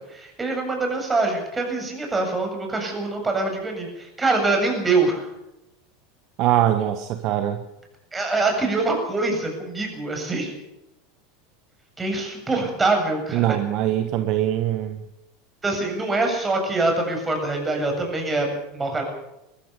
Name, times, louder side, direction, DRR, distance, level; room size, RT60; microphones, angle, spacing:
voice 1, 0.1-5.3 8.1-10.5 12.0-13.6 15.6-19.0, right 3 dB, 15° right, 3 dB, 7.8 m, -24 dB
voice 2, 6.4-7.6 13.3-15.0, right 12 dB, 50° right, 9 dB, 1.4 m, -22 dB
21.5 x 14.5 x 8.4 m, 0.89 s
hypercardioid pair, 85°, 0 cm